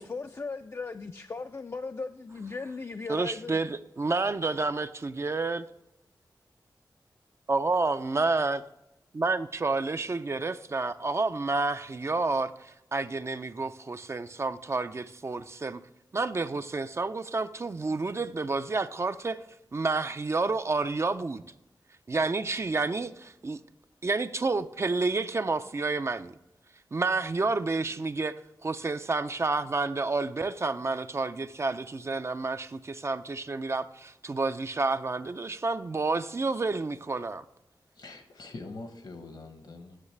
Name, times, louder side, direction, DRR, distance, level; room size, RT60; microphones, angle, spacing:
voice 1, 0.0-3.6, left 4 dB, 35° left, 0.3 m, -37 dB
voice 2, 3.1-5.7 7.5-8.6 9.1-15.8 16.1-19.4 19.7-21.4 22.1-23.6 24.0-26.3 26.9-28.3 28.6-37.4, right 3 dB, 35° right, 0.4 m, -29 dB
voice 3, 37.9-40.0, left 3 dB, 70° left, 1.1 m, -44 dB
9.5 x 6.4 x 3.2 m
wide cardioid pair, 95°, 8 cm